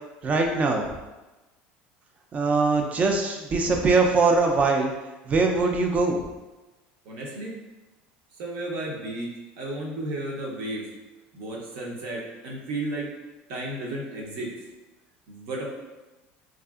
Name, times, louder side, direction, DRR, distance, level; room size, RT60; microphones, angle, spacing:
voice 1, 0.2-0.8 2.3-4.9 5.3-6.2, right 3 dB, 30° right, 2 dB, 0.4 m, -22 dB
voice 2, 7.0-7.6 8.4-9.3 9.6-10.8 11.3-13.1 13.5-14.5 15.3-15.7, right 1 dB, 70° right, -3 dB, 0.7 m, -33 dB
2.6 x 2.4 x 2.3 m, 1.1 s
supercardioid pair, 115°, 5 cm